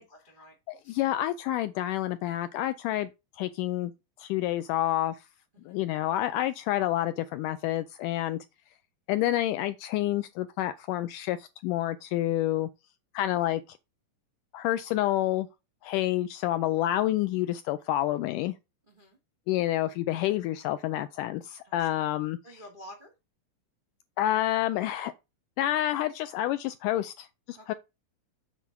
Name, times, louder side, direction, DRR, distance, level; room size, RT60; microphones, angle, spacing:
voice 1, 0.0-0.5 0.8-1.0 5.5-5.8 18.9-19.2 21.6-21.9 22.4-23.1 27.5-27.7, equal, 70° right, 0.5 m, -50 dB
voice 2, 0.7-3.1 3.4-3.9 4.2-5.2 5.7-8.4 9.1-12.7 13.1-13.8 14.5-15.5 15.8-18.5 19.5-22.4 24.2-25.1 25.6-27.7, left 14 dB, 85° left, 1.8 m, -28 dB
7.6 x 4.1 x 5.8 m
omnidirectional pair, 4.1 m